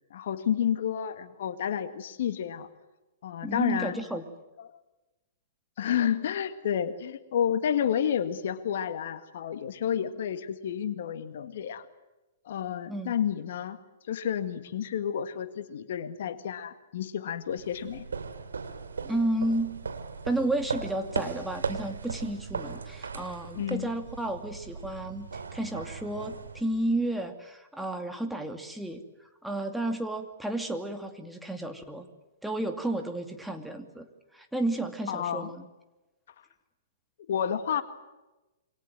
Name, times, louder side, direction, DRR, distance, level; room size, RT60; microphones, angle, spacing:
voice 1, 0.1-2.7 3.2-4.0 4.6-4.8 5.8-11.9 12.5-13.8 14.1-18.1 23.5-23.9 35.1-35.5 37.3-37.8, left 9 dB, 60° left, 10 dB, 1.9 m, -30 dB
voice 2, 3.4-4.2 12.9-13.1 19.0-19.8 20.2-29.0 29.4-32.1 32.4-34.1 34.3-35.6, right 1 dB, 5° right, 5 dB, 2.6 m, -32 dB
sound 1, 17.5-27.1, right 5 dB, 75° right, 2.7 m, -38 dB
27.5 x 24.5 x 7.8 m, 1.1 s
figure-of-eight pair, 110°, 0 cm